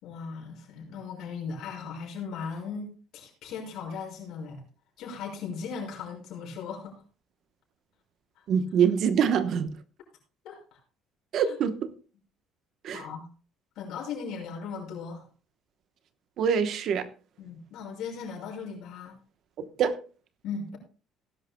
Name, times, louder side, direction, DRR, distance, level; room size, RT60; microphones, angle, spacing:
voice 1, 0.0-4.6 5.0-7.0 8.4-8.5 10.4-10.8 11.4-11.6 12.9-13.3 13.8-15.2 17.4-19.2 20.4-20.8, left 5 dB, 65° left, 5.9 m, -38 dB
voice 2, 8.5-9.8 11.3-11.9 12.8-13.0 16.4-17.1 19.8-20.0, right 7 dB, 50° right, 1.0 m, -24 dB
19.0 x 11.0 x 2.2 m
cardioid pair, 150°, 0 cm